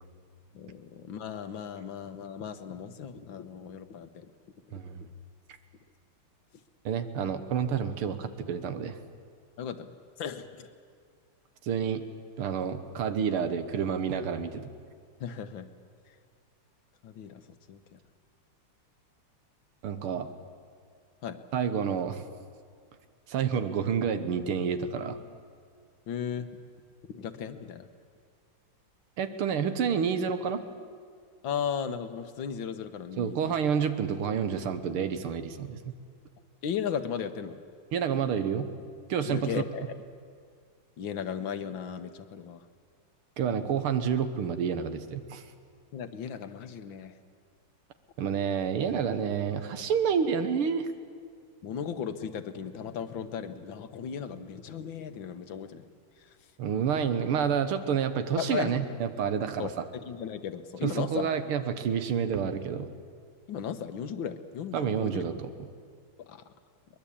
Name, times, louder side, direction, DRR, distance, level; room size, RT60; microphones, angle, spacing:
voice 1, 0.5-4.3 5.0-5.1 9.6-9.9 10.2-10.7 15.2-15.7 17.0-17.4 17.7-18.0 21.2-21.4 26.1-26.5 27.1-27.9 31.4-33.5 36.6-37.6 39.2-39.9 41.0-42.7 43.7-43.8 45.9-47.1 51.6-55.9 56.2-56.3 58.4-58.7 59.6-61.3 63.5-65.3 66.2-66.4, left 7 dB, 65° left, 10 dB, 1.7 m, -36 dB
voice 2, 4.7-5.0 6.9-9.0 11.6-12.0 12.4-14.7 19.8-20.3 21.5-22.2 23.3-25.2 29.2-30.6 33.2-35.9 37.9-38.7 39.1-39.6 43.4-45.4 48.2-50.9 56.6-59.8 60.8-62.9 64.7-65.5, right 7 dB, 90° right, 10 dB, 2.1 m, -29 dB
22.5 x 20.5 x 8.6 m, 2.1 s
omnidirectional pair, 2.3 m